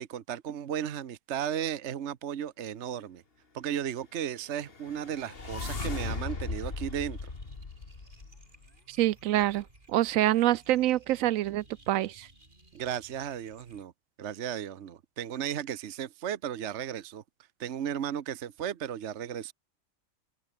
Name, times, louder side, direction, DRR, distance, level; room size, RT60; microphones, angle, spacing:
voice 1, 0.0-3.2 3.5-7.3 12.7-13.9 14.2-17.2 17.6-19.5, right 9 dB, 60° right, 1.2 m, -35 dB
sound 1, 4.5-8.7, left 4 dB, 45° left, 2.3 m, -37 dB
sound 2, 5.5-13.8, right 2 dB, 35° right, 4.3 m, -59 dB
voice 2, 8.9-12.3, right 14 dB, 80° right, 1.0 m, -26 dB
omnidirectional pair, 1.4 m